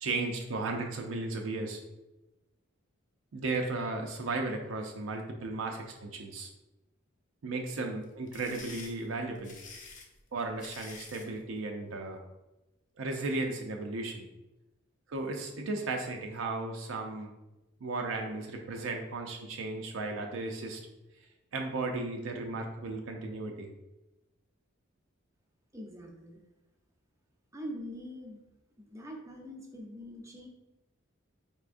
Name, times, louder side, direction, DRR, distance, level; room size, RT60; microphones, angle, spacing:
voice 1, 0.0-1.8 3.3-6.5 7.4-9.6 10.3-12.2 13.0-14.3 15.1-17.3 17.8-20.8 21.5-23.7, right 3 dB, 70° right, 2 dB, 0.5 m, -35 dB
sound 1, 8.0-11.3, left 4 dB, 40° left, 0.6 m, -48 dB
voice 2, 25.7-26.4 27.5-28.4 28.8-30.5, equal, 15° right, 1 dB, 0.6 m, -43 dB
4.3 x 3.4 x 2.5 m, 1.0 s
head